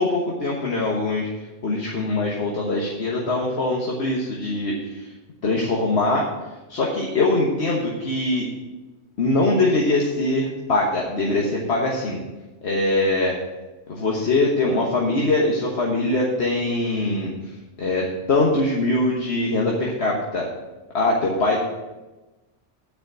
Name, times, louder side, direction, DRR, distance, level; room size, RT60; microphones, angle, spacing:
voice 1, 0.0-5.1 5.4-6.2 6.7-8.5 9.2-12.2 12.6-13.3 13.9-17.3 17.8-20.5 20.9-21.6, left 2 dB, 60° left, -2 dB, 1.5 m, -22 dB
9.3 x 5.1 x 7.6 m, 1.1 s
omnidirectional pair, 1.3 m